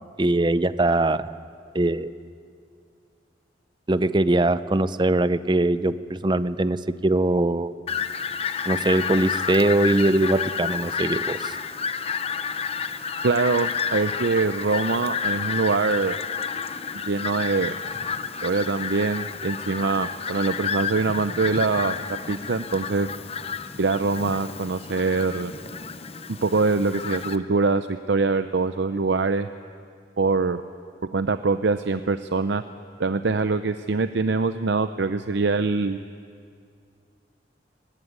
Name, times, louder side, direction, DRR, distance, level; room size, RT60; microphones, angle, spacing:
voice 1, 0.2-1.3 1.7-2.1 3.9-7.7 8.7-11.5, right 2 dB, 25° right, 14 dB, 0.6 m, -22 dB
Fowl, 7.9-27.4, left 6 dB, 35° left, 0.8 m, -30 dB
voice 2, 13.2-16.2 17.0-17.8 18.4-22.0 22.3-23.1 23.8-25.5 26.4-29.5 30.2-30.6 31.1-32.6 33.0-36.0, right 4 dB, 70° right, 10 dB, 0.6 m, -23 dB
23.0 x 19.0 x 9.6 m, 2.2 s
head